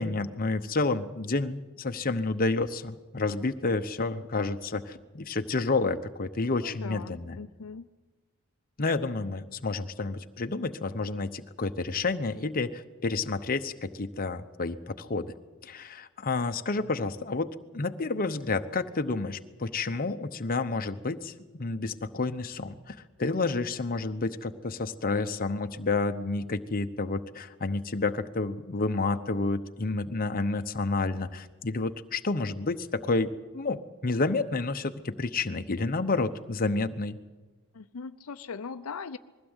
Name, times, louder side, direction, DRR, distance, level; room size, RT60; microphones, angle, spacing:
voice 1, 0.0-7.4 8.8-15.3 15.6-37.2, left 3 dB, 40° left, 8 dB, 0.9 m, -30 dB
voice 2, 6.6-7.9 37.7-39.2, left 5 dB, 75° left, 10 dB, 0.6 m, -40 dB
21.0 x 16.0 x 8.0 m, 1.3 s
head